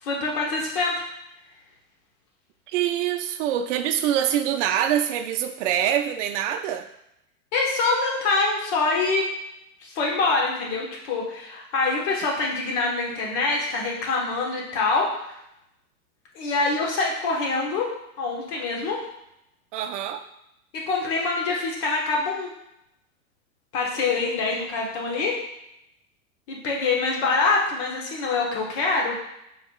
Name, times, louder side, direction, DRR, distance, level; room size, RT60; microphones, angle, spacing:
voice 1, 0.0-1.0 7.5-9.3 9.8-15.4 16.3-19.0 20.7-22.5 23.7-25.4 26.5-29.2, left 3 dB, 50° left, -1 dB, 1.3 m, -25 dB
voice 2, 2.7-6.9 19.7-20.2, right 10 dB, 55° right, 7 dB, 0.5 m, -25 dB
4.6 x 3.5 x 2.4 m, 0.81 s
hypercardioid pair, 105°, 44 cm